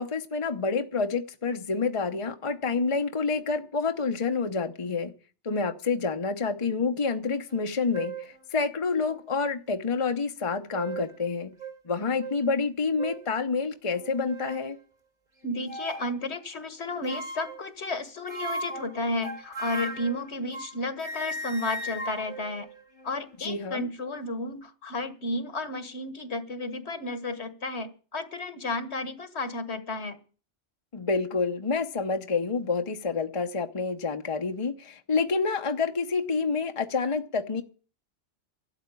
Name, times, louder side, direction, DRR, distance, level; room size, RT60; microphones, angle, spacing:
voice 1, 0.0-5.1 5.4-11.6 11.9-14.8 23.4-23.9 30.9-37.6, left 4 dB, 30° left, 0.9 m, -28 dB
sound 1, 7.5-7.6 7.9-8.3 9.1-9.2 10.4-11.2 11.6-11.8 12.2-12.4 13.0-13.3 13.9-14.7 15.7-16.1 17.1-17.7 18.3-20.8 21.0-23.3, right 2 dB, 40° right, 1.9 m, -37 dB
voice 2, 15.4-22.7 23.0-30.2, left 2 dB, 65° left, 1.8 m, -32 dB
12.5 x 7.9 x 9.7 m
omnidirectional pair, 1.2 m